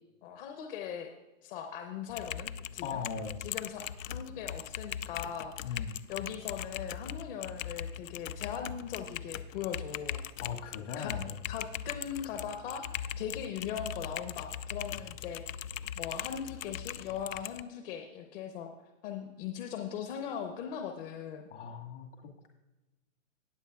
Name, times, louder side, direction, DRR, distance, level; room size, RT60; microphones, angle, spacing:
voice 1, 0.2-1.1 1.4-3.0 3.4-5.8 6.1-10.2 11.0-11.2 11.5-12.9 13.2-15.4 16.0-18.7 19.0-21.4, left 8 dB, 45° left, 4 dB, 0.9 m, -39 dB
Typing, 2.1-17.6, left 9 dB, 85° left, 0.5 m, -40 dB
voice 2, 2.8-3.5 5.6-6.0 10.4-11.3 15.0-15.1 21.5-22.5, left 6 dB, 65° left, 3 dB, 1.9 m, -39 dB
19.0 x 7.3 x 2.4 m, 1.1 s
hypercardioid pair, 130°, 39 cm